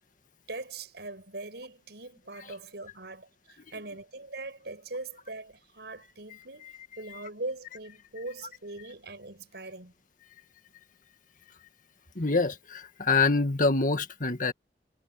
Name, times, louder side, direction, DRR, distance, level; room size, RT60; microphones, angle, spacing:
voice 1, 0.5-9.9, right 2 dB, 65° right, 7.9 m, -41 dB
voice 2, 12.2-14.5, left 3 dB, 50° left, 1.9 m, -25 dB
head